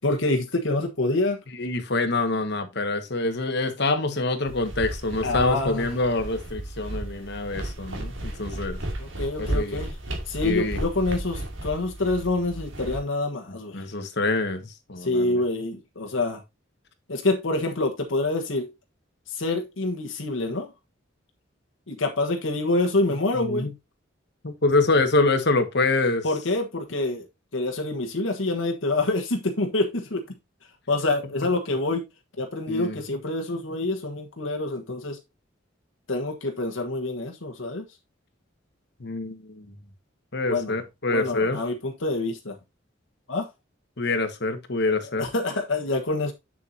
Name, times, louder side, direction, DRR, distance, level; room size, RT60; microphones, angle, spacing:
voice 1, 0.0-1.4 5.2-6.0 9.0-9.9 10.3-13.9 15.0-16.4 17.1-18.7 19.3-20.7 21.9-23.7 26.2-27.3 27.5-30.2 30.9-32.1 32.4-35.2 36.1-37.8 40.5-40.7 41.1-42.6 43.3-43.5 45.2-46.3, left 2 dB, 80° left, 1.3 m, -26 dB
voice 2, 1.5-8.8 9.4-9.8 10.4-10.8 13.5-15.4 23.3-23.7 24.4-26.3 32.7-33.0 39.0-39.7 40.3-41.6 44.0-45.3, left 2 dB, 60° left, 1.5 m, -26 dB
sound 1, 4.5-13.0, right 1 dB, 75° right, 2.5 m, -34 dB
7.5 x 7.0 x 2.7 m
head